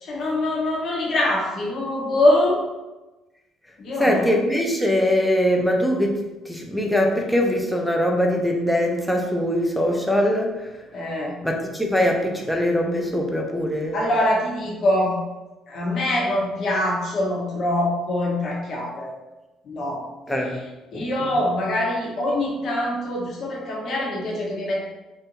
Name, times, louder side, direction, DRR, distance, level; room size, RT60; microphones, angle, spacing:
voice 1, 0.0-2.6 3.8-4.3 10.9-11.4 13.9-15.1 15.7-19.1 19.6-20.0 20.9-24.8, left 1 dB, 55° left, -4 dB, 0.8 m, -23 dB
voice 2, 4.0-6.2 6.5-10.6 11.4-14.0 20.3-20.6 20.9-21.3, equal, ahead, 0 dB, 0.5 m, -22 dB
2.6 x 2.1 x 2.9 m, 1.1 s
hypercardioid pair, 50°, 0 cm